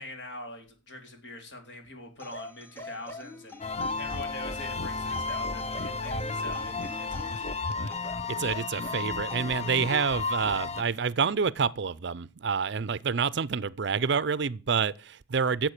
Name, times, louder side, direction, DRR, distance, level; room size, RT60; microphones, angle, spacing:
voice 1, 0.0-3.6 4.0-8.0, left 1 dB, 60° left, 4.1 m, -44 dB
sound 1, 2.2-4.4 5.1-7.5 7.9-10.1 11.2-11.4, left 1 dB, 10° left, 1.7 m, -44 dB
sound 2, 3.6-10.8, left 3 dB, 35° left, 0.8 m, -33 dB
voice 2, 8.3-15.7, right 6 dB, 60° right, 0.5 m, -28 dB
13.5 x 7.8 x 6.6 m
head